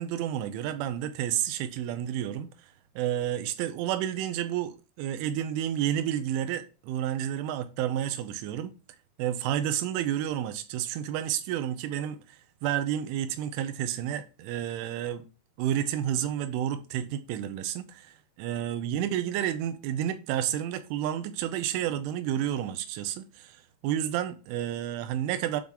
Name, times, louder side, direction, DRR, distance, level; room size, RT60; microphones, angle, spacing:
voice 1, 0.0-2.5 3.0-8.7 9.2-15.2 15.6-25.6, right 11 dB, 80° right, 3.2 m, -30 dB
11.5 x 3.9 x 3.7 m
omnidirectional pair, 5.7 m